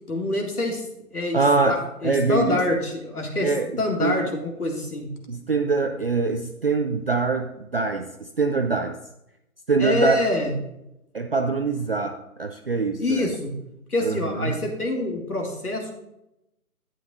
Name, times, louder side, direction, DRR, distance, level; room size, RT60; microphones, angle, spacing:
voice 1, 0.1-0.8 1.1-1.4 1.7-3.5 3.8-5.1 9.8-10.5 13.0-13.5 13.9-15.9, left 2 dB, 85° left, 1 dB, 2.3 m, -26 dB
voice 2, 1.3-1.8 2.0-2.6 3.4-4.3 5.3-8.1 8.4-8.9 9.7-10.2 11.1-13.3 14.0-14.6, right 4 dB, 45° right, 5 dB, 0.4 m, -24 dB
11.5 x 9.1 x 2.5 m, 0.86 s
figure-of-eight pair, 150°, 44 cm